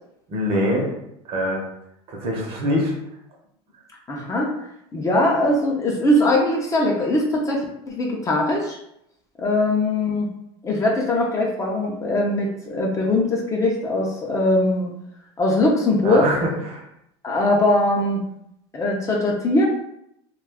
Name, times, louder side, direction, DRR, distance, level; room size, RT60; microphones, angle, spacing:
voice 1, 0.3-0.9 1.2-1.6 2.1-2.9 16.0-16.8, equal, 45° right, 0 dB, 0.8 m, -23 dB
voice 2, 4.1-4.5 4.9-8.8 9.4-10.3 10.6-14.9 15.4-16.3 17.2-18.2 18.7-19.6, left 1 dB, 25° left, -1 dB, 0.5 m, -21 dB
2.4 x 2.3 x 3.4 m, 0.77 s
supercardioid pair, 115°, 14 cm